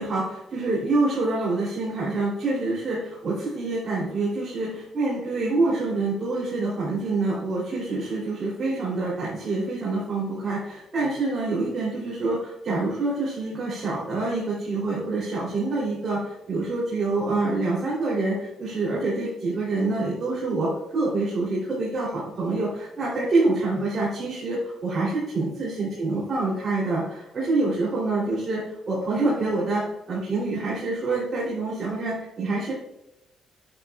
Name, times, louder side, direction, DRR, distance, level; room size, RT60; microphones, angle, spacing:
voice 1, 0.0-32.7, right 2 dB, 45° right, -7 dB, 3.0 m, -26 dB
9.1 x 8.7 x 2.4 m, 0.88 s
cardioid pair, 105°, 0 cm